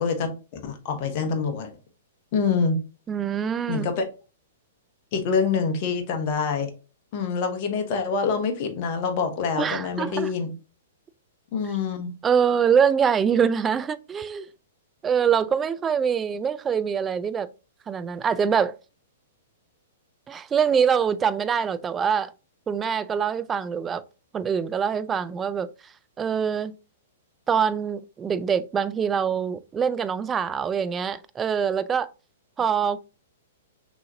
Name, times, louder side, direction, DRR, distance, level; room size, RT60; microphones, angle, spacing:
voice 1, 0.0-1.7 2.3-2.8 3.7-4.1 5.1-6.7 7.1-10.5 11.5-12.1, left 5 dB, 40° left, 1.1 m, -26 dB
voice 2, 3.1-3.9 9.6-10.3 12.2-14.5 15.0-17.5 17.9-18.8 20.3-22.3 22.7-24.0 24.3-25.7 26.2-26.7 27.5-32.1 32.6-33.0, right 7 dB, 20° right, 0.4 m, -24 dB
6.1 x 3.0 x 2.7 m
figure-of-eight pair, 110°, 0 cm